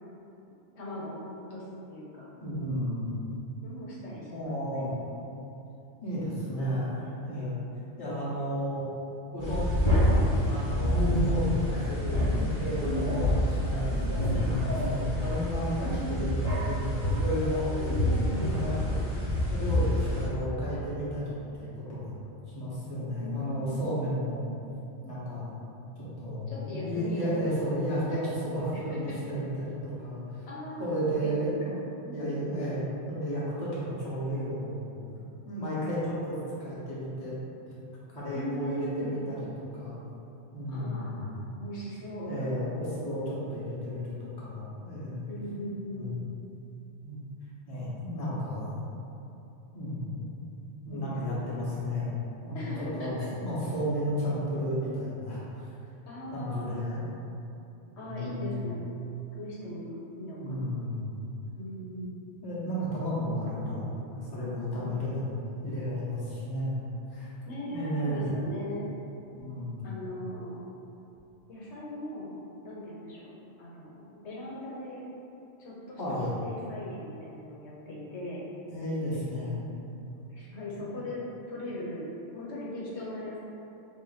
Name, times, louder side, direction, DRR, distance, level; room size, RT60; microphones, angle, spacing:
voice 1, 0.7-2.3 3.6-5.0 14.6-14.8 15.8-16.3 17.8-18.6 23.2-23.8 26.5-27.3 28.7-29.2 30.5-31.7 32.0-32.5 38.3-39.2 40.7-42.3 45.3-46.2 50.9-51.6 52.5-53.3 56.1-57.0 58.0-58.8 59.3-60.8 61.6-62.2 64.8-65.0 67.5-68.9 69.8-70.7 71.5-72.4 72.6-73.3 73.6-75.0 75.6-76.0 76.4-78.5 80.3-83.4, left 1 dB, 80° left, -6 dB, 1.0 m, -39 dB
voice 2, 2.4-3.1 4.2-4.9 6.0-7.6 8.0-8.8 9.3-11.0 11.3-14.1 14.3-17.7 18.3-19.0 19.5-22.1 22.5-24.5 25.0-25.5 26.0-30.5 30.8-31.7 32.1-34.9 35.5-37.3 38.1-40.0 40.5-41.3 42.2-45.3 45.9-46.1 47.0-47.2 47.7-48.8 49.7-50.2 50.8-52.1 52.4-55.7 56.3-57.1 58.0-58.6 60.4-61.2 62.4-66.8 67.1-67.3 67.7-68.3 69.4-69.9 76.0-76.3 78.7-79.6 80.7-80.8, equal, 25° left, -9 dB, 0.8 m, -33 dB
sound 1, 9.4-20.3, left 1 dB, 45° left, 1.2 m, -27 dB
3.3 x 2.6 x 4.0 m, 2.9 s
omnidirectional pair, 1.2 m